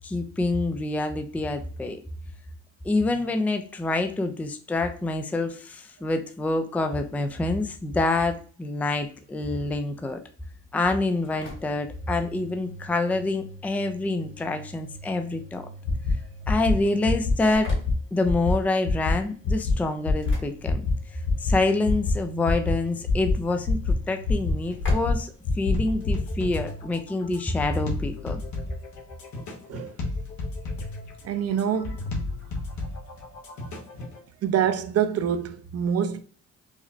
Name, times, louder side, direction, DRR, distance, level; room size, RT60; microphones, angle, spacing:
voice 1, 0.0-2.0 2.8-10.2 10.7-15.7 16.5-17.7 18.1-20.9 21.4-28.4, left 2 dB, 5° left, 0.4 m, -27 dB
Engine / Slam, 11.0-26.2, left 1 dB, 40° left, 1.5 m, -41 dB
sound 1, 15.8-16.1 16.4-16.7 17.1-17.3 17.6-17.9 18.2-18.5 18.8-19.1 19.4-19.7 20.0-20.3 20.6-20.9 21.2-21.5 21.8-22.1 22.4-22.7 23.1-23.3 23.7-23.9 24.2-24.5 24.8-25.1 25.4-25.7 26.0-26.1, left 4 dB, 85° left, 0.9 m, -24 dB
sound 2, 25.7-34.2, left 2 dB, 70° left, 1.2 m, -33 dB
voice 2, 31.2-32.0 34.4-36.2, right 8 dB, 55° right, 0.6 m, -25 dB
4.9 x 2.1 x 2.7 m
cardioid pair, 90°, 30 cm